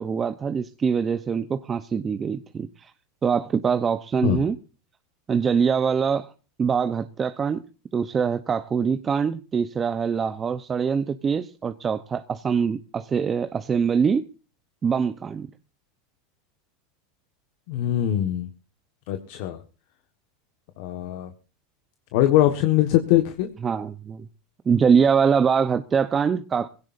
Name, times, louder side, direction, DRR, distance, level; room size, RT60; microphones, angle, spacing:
voice 1, 0.0-2.9 3.2-4.6 5.3-6.3 6.6-7.6 7.9-14.2 14.8-15.5 23.6-24.3 24.7-26.7, right 6 dB, 25° right, 0.9 m, -23 dB
voice 2, 17.7-18.5 19.1-19.6 20.8-21.3 22.1-23.5, left 13 dB, 65° left, 1.6 m, -22 dB
21.5 x 16.5 x 2.7 m
supercardioid pair, 125°, 0 cm